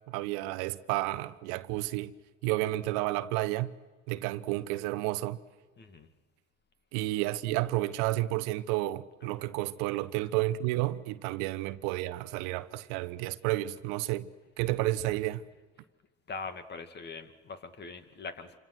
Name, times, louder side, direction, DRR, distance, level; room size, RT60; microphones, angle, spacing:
voice 1, 0.1-2.1 2.4-3.7 4.1-5.4 6.9-14.3 14.6-15.4, right 17 dB, 60° right, 1.0 m, -31 dB
voice 2, 5.8-6.1 9.2-9.3 16.3-18.6, left 4 dB, 30° left, 2.4 m, -42 dB
28.5 x 25.0 x 6.2 m
hypercardioid pair, 80°, 33 cm